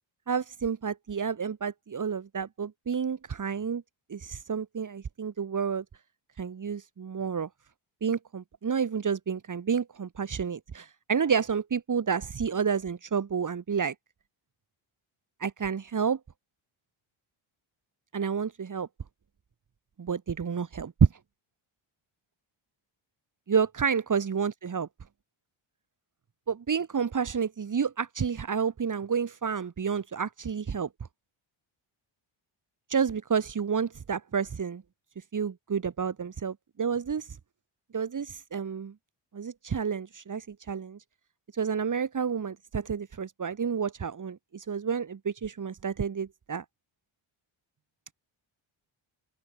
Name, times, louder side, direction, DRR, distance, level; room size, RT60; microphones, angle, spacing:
voice 1, 0.3-3.8 4.1-5.8 6.4-7.5 8.0-13.9 15.4-16.2 18.1-18.9 20.0-21.1 23.5-24.9 26.5-30.9 32.9-34.8 35.3-37.3 37.9-38.9 39.3-41.0 41.5-46.6, right 6 dB, 40° right, 5.9 m, -30 dB
open air
wide cardioid pair, 150°, 49 cm